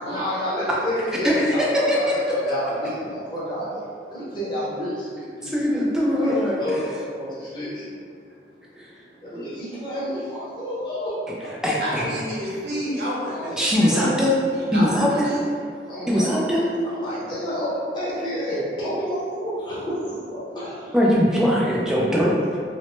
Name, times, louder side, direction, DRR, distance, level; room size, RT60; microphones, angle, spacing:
voice 1, 0.0-5.5 6.0-8.0 9.2-11.2 11.4-11.5 13.3-14.1 15.8-16.3 16.8-21.0, equal, 25° left, -9 dB, 0.8 m, -30 dB
voice 2, 1.2-2.0 5.4-6.6 8.8-8.9 11.6-12.0 13.6-14.3 14.7-15.3 16.1-16.7 20.9-22.6, equal, 5° right, -6 dB, 0.3 m, -21 dB
voice 3, 11.8-14.0 14.5-15.4, equal, 65° right, -6 dB, 0.8 m, -29 dB
3.0 x 2.0 x 3.0 m, 2.2 s
head